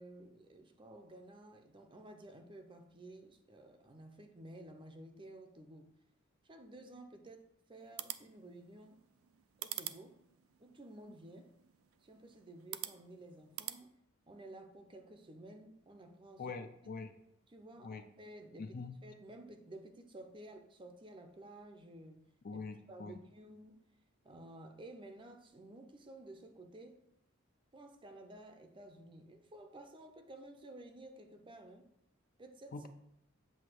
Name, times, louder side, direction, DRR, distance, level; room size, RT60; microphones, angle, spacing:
voice 1, 0.0-5.9 6.4-9.0 9.6-10.1 10.6-11.5 12.0-13.9 14.3-16.4 17.5-22.2 22.5-22.6 22.9-23.8 24.2-27.0 27.7-31.9 32.4-32.8, right 1 dB, 25° right, 5 dB, 0.6 m, -53 dB
sound 1, 7.8-13.8, right 14 dB, 75° right, 0.4 m, -48 dB
voice 2, 16.4-17.1 17.8-18.0 18.6-19.0 22.4-23.2 32.7-32.9, left 4 dB, 45° left, 8 dB, 0.5 m, -44 dB
7.8 x 2.7 x 6.0 m, 0.80 s
head